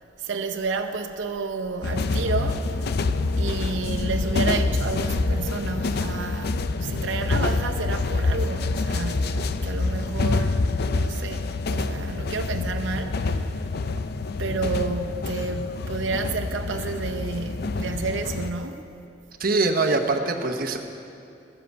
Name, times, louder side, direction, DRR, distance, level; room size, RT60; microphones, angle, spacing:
voice 1, 0.2-2.9 3.4-10.6 10.9-13.4 14.4-18.9, right 4 dB, 85° right, 0.7 m, -31 dB
sound 1, 1.8-18.5, left 3 dB, 55° left, 0.5 m, -26 dB
voice 2, 19.4-20.8, right 3 dB, 50° right, 0.9 m, -23 dB
13.5 x 7.6 x 8.0 m
head